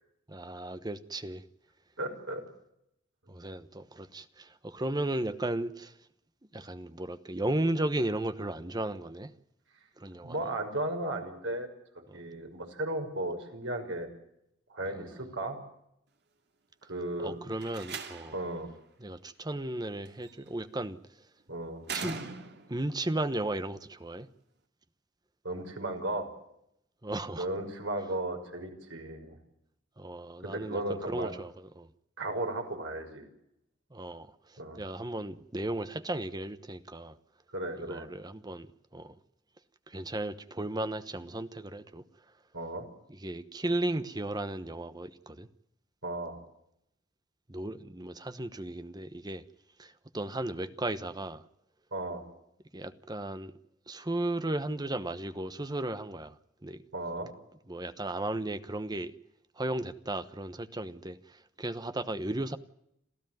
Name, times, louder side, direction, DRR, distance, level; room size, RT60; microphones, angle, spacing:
voice 1, 0.3-1.4 3.3-5.9 6.5-9.3 10.0-10.5 12.1-12.2 17.2-18.4 19.0-21.0 21.9-22.2 22.7-24.3 27.0-27.5 30.0-31.9 33.9-37.2 37.8-39.1 39.9-42.0 43.1-45.5 47.5-49.4 49.8-51.4 52.7-53.5 53.9-56.8 57.7-59.1 59.6-62.6, right 1 dB, 20° right, 1.0 m, -35 dB
voice 2, 2.0-2.4 10.2-11.7 11.9-14.1 14.7-15.6 16.9-17.4 18.3-18.7 21.5-21.9 25.4-26.3 27.4-29.4 30.4-31.3 32.2-33.3 34.6-34.8 37.5-38.1 42.5-42.8 46.0-46.4 51.9-52.2 56.9-57.3, right 1 dB, 80° right, 5.9 m, -35 dB
Slam, 17.5-18.5 20.1-20.5 21.8-22.8, right 5 dB, 60° right, 2.6 m, -40 dB
27.5 x 15.0 x 9.3 m
head